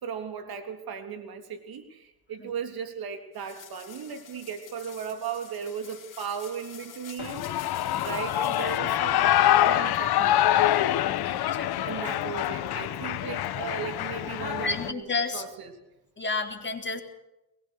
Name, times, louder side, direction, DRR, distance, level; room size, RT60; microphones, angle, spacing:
voice 1, 0.0-7.6 8.0-10.6 11.8-15.7, right 7 dB, 70° right, 7 dB, 3.4 m, -37 dB
sound 1, 3.3-8.8, left 8 dB, 55° left, 3.7 m, -48 dB
Shout / Cheering, 7.2-14.9, left 12 dB, 85° left, 1.3 m, -25 dB
voice 2, 11.0-12.0 14.6-15.4 16.2-17.0, left 3 dB, 30° left, 4 dB, 4.0 m, -32 dB
22.0 x 21.0 x 6.6 m, 0.91 s
cardioid pair, 90°, 37 cm